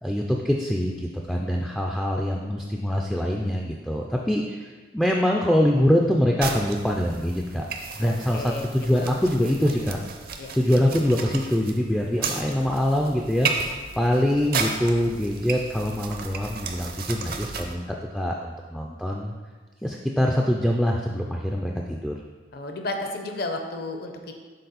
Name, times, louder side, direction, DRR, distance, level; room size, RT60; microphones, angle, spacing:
voice 1, 0.0-7.7 8.0-10.0 10.5-13.5 14.0-19.4 19.8-22.1, equal, 5° left, -1 dB, 0.3 m, -24 dB
sound 1, 6.4-17.7, right 5 dB, 50° right, 0.5 m, -34 dB
voice 2, 8.0-9.1 10.4-10.5 22.5-24.3, left 2 dB, 55° left, 4 dB, 0.6 m, -33 dB
6.7 x 4.0 x 4.0 m, 1.4 s
head